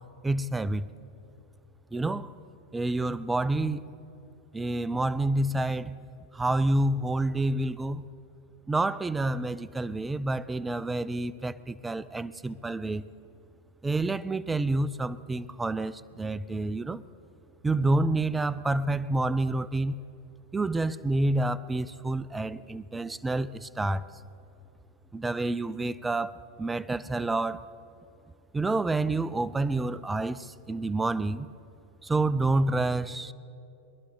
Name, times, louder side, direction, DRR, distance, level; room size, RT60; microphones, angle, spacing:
voice 1, 0.2-0.9 1.9-2.3 2.7-3.9 4.5-6.0 6.3-8.1 8.7-13.1 13.8-17.0 17.6-20.0 20.5-24.1 25.1-27.7 28.5-31.5 32.0-33.3, right 2 dB, 10° right, 17 dB, 0.4 m, -28 dB
23.0 x 11.0 x 3.9 m, 2.7 s
figure-of-eight pair, 90°, 0 cm